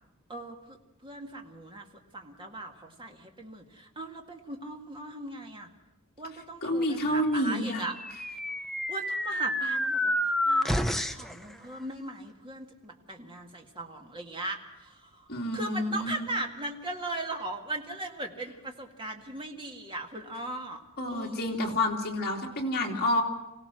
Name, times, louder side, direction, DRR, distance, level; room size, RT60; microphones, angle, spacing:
voice 1, 0.3-1.9 2.1-5.7 6.2-8.0 8.9-21.8, right 2 dB, 25° right, 2 dB, 2.0 m, -39 dB
voice 2, 6.6-7.8 15.3-16.3 21.0-23.2, left 1 dB, 45° left, -1 dB, 3.0 m, -29 dB
sound 1, 7.7-11.3, left 1 dB, ahead, 0.7 m, -29 dB
25.5 x 17.0 x 6.3 m, 0.99 s
head